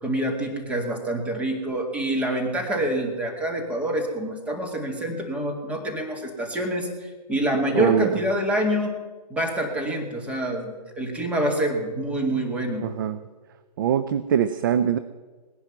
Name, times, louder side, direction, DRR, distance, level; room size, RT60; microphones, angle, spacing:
voice 1, 0.0-8.9 9.3-12.8, right 1 dB, 5° right, 1 dB, 1.9 m, -26 dB
voice 2, 7.7-8.1 12.8-13.2 13.8-15.0, right 9 dB, 30° right, 13 dB, 0.4 m, -22 dB
19.0 x 10.5 x 6.0 m, 1.3 s
figure-of-eight pair, 140°, 21 cm